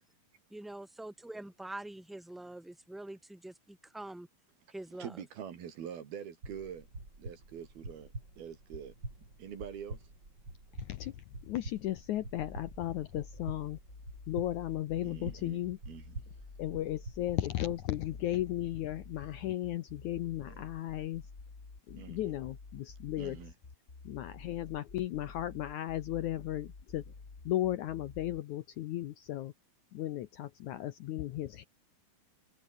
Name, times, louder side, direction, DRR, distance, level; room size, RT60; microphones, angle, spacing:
voice 1, 0.5-4.3 4.7-5.2, right 1 dB, ahead, 3.0 m, -45 dB
voice 2, 5.0-6.9 7.2-8.1 8.4-8.9 9.4-10.0 15.0-15.6 15.9-16.2 20.5-20.7 22.0-22.3 23.2-23.5, right 8 dB, 85° right, 4.9 m, -44 dB
sound 1, 6.4-17.9, right 2 dB, 25° right, 8.1 m, -47 dB
voice 3, 10.8-13.8 14.3-15.8 16.6-21.2 21.9-23.4 24.0-27.0 27.5-29.5 29.9-31.7, left 14 dB, 70° left, 1.9 m, -35 dB
sound 2, 12.4-28.4, left 4 dB, 25° left, 2.3 m, -50 dB
open air
omnidirectional pair, 4.3 m